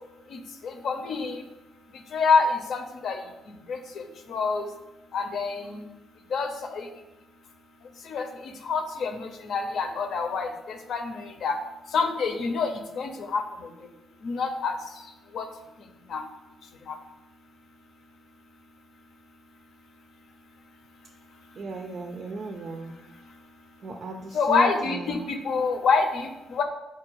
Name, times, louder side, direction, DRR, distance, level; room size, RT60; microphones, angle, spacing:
voice 1, 0.3-1.4 2.1-3.2 3.7-4.0 4.3-4.6 5.1-5.8 6.3-6.9 8.1-8.3 8.6-11.5 11.9-12.7 13.0-13.4 14.2-14.7 15.3-15.5 16.1-16.2 16.9-17.0 24.3-26.6, left 5 dB, 65° left, 6 dB, 0.5 m, -26 dB
voice 2, 21.6-22.9 23.8-25.2, right 3 dB, 50° right, 2 dB, 0.4 m, -35 dB
4.6 x 2.3 x 4.5 m, 0.99 s
cardioid pair, 90°, 0 cm